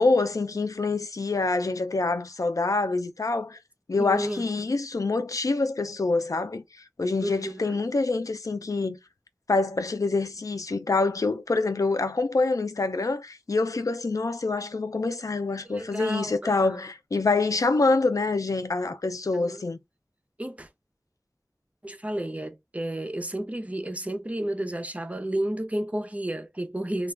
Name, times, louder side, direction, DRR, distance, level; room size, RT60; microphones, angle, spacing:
voice 1, 0.0-3.6 3.9-6.6 7.0-9.0 9.5-19.8, left 3 dB, 85° left, 0.4 m, -26 dB
voice 2, 4.0-4.4 7.2-7.8 15.6-16.8 19.3-19.6 20.4-20.7 21.8-27.1, right 1 dB, 25° right, 0.5 m, -32 dB
2.3 x 2.2 x 3.1 m
wide cardioid pair, 40°, 6 cm